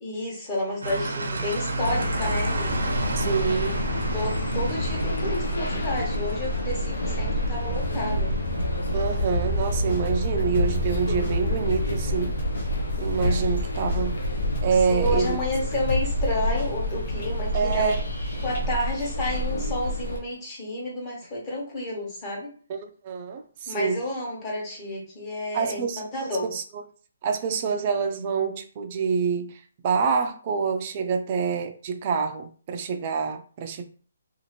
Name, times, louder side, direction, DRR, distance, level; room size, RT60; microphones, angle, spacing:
voice 1, 0.0-2.8 4.1-8.3 14.9-17.9 18.4-22.5 23.7-25.9 26.1-26.5, left 1 dB, 20° left, 1.0 m, -30 dB
sound 1, 0.8-18.8, right 2 dB, 85° right, 0.6 m, -34 dB
sound 2, 1.8-20.2, left 1 dB, 75° left, 0.6 m, -28 dB
voice 2, 3.2-3.8 8.9-12.3 13.0-14.2 14.6-15.4 17.5-18.0 22.7-24.0 25.5-26.0 26.5-26.6 27.2-33.8, right 6 dB, 30° right, 0.4 m, -26 dB
sound 3, 9.7-18.9 19.2-19.3, left 2 dB, 55° left, 1.1 m, -33 dB
2.7 x 2.5 x 2.9 m
hypercardioid pair, 165°, 0 cm